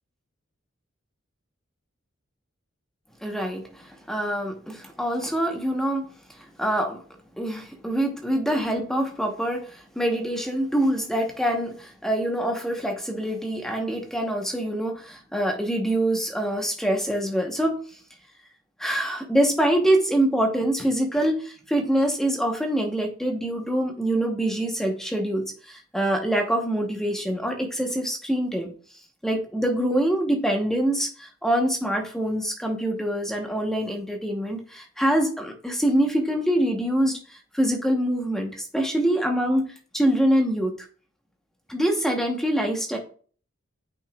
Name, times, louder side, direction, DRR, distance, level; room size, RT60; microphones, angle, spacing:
voice 1, 3.2-6.1 6.6-7.0 7.4-17.8 18.8-28.7 29.2-39.7 39.9-40.7 41.7-43.0, right 1 dB, ahead, 2 dB, 1.0 m, -25 dB
8.9 x 5.5 x 2.4 m, 0.42 s
head